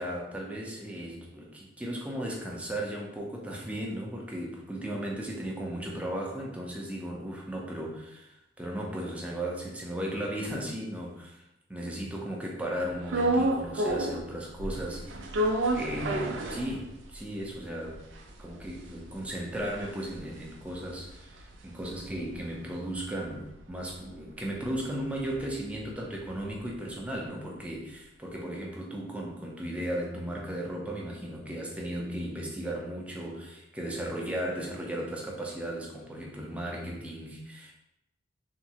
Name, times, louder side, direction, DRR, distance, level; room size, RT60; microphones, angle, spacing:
voice 1, 0.0-11.4 11.7-18.1 18.4-37.7, right 1 dB, 5° right, -2 dB, 0.5 m, -36 dB
sound 1, 13.1-14.3 14.6-17.2 17.6-17.7 17.8-22.3 22.7-26.7, right 1 dB, 80° right, 0.4 m, -32 dB
3.5 x 2.0 x 2.8 m, 0.84 s
head